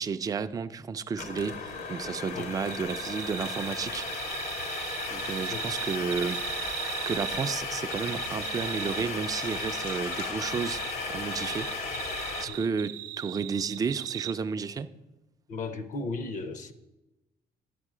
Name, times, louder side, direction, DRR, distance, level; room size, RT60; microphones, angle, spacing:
voice 1, 0.0-4.1 5.1-10.8 11.1-11.7 12.4-14.9, right 5 dB, 20° right, 0.4 m, -32 dB
sound 1, 1.2-12.5, left 4 dB, 65° left, 1.4 m, -35 dB
sound 2, 2.7-7.5 7.9-10.9 11.3-14.3, right 14 dB, 55° right, 0.7 m, -38 dB
sound 3, 4.9-10.8, left 2 dB, 85° left, 3.0 m, -50 dB
voice 2, 15.5-16.7, left 3 dB, 50° left, 0.7 m, -35 dB
11.0 x 7.3 x 4.8 m
cardioid pair, 110°, 17 cm